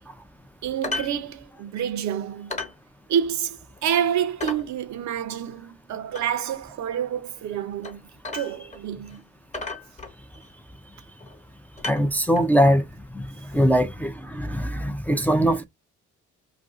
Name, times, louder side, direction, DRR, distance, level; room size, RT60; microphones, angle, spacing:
voice 1, 0.6-2.6 3.1-8.0 8.3-9.2, right 9 dB, 65° right, 0.6 m, -28 dB
sound 1, 0.8-1.1 1.4-1.5 1.9-2.0 2.5-2.8 3.2-3.3 3.8-3.9 4.4-4.7 6.1-6.3 7.8-8.0 8.2-8.8 9.1-9.2 9.5-10.5 11.2-11.4 11.8-12.5 13.5-13.6, left 3 dB, 25° left, 0.9 m, -34 dB
voice 2, 11.9-12.8 13.1-13.2 13.5-15.6, equal, 5° left, 0.4 m, -21 dB
2.6 x 2.3 x 3.5 m
cardioid pair, 90°, 30 cm